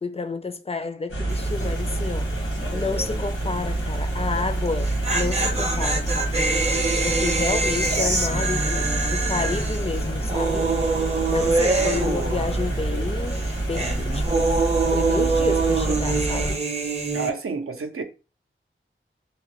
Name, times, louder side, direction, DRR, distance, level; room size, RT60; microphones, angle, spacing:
voice 1, 0.0-6.3 7.0-10.7 11.3-13.4 13.7-14.5 14.9-16.6, left 4 dB, 30° left, 0.4 m, -30 dB
sound 1, 1.1-16.5, right 2 dB, 90° left, 1.1 m, -27 dB
sound 2, 1.3-1.6 1.9-2.0 4.6-13.0 13.3-17.3, right 3 dB, 30° right, 0.5 m, -25 dB
voice 2, 6.7-7.3 7.9-8.2 11.4-11.5 17.1-18.0, right 4 dB, 85° right, 0.5 m, -31 dB
3.0 x 2.1 x 2.9 m
wide cardioid pair, 40°, 21 cm